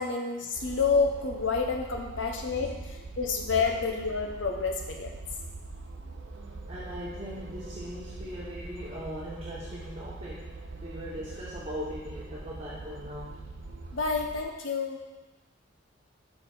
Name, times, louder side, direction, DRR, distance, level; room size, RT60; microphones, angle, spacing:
voice 1, 0.0-2.8 3.2-5.1 13.9-15.0, left 4 dB, 60° left, 1 dB, 0.8 m, -28 dB
sound 1, 0.5-14.4, right 3 dB, 70° right, 0.7 m, -43 dB
voice 2, 6.7-13.4, equal, 30° right, -8 dB, 0.9 m, -40 dB
5.6 x 5.2 x 4.3 m, 1.1 s
head